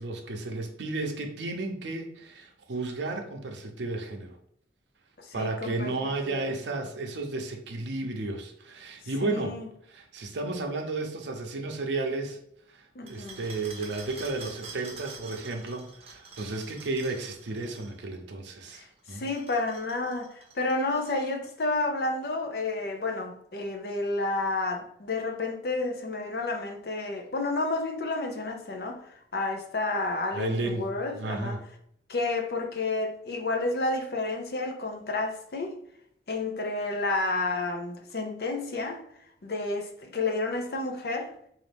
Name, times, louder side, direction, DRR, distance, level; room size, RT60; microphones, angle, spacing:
voice 1, 0.0-4.4 5.3-9.6 9.9-12.4 12.7-19.2 30.3-30.9 31.1-31.6, right 2 dB, 85° right, 0.6 m, -33 dB
voice 2, 5.2-6.5 9.2-9.7 13.0-13.4 18.7-18.8 19.1-29.0 29.3-31.6 32.1-35.8 36.3-39.0 39.4-41.3, left 2 dB, 60° left, 0.6 m, -30 dB
sound 1, 13.1-18.0 19.0-21.5, right 4 dB, 35° right, 0.6 m, -47 dB
3.9 x 2.5 x 3.4 m
head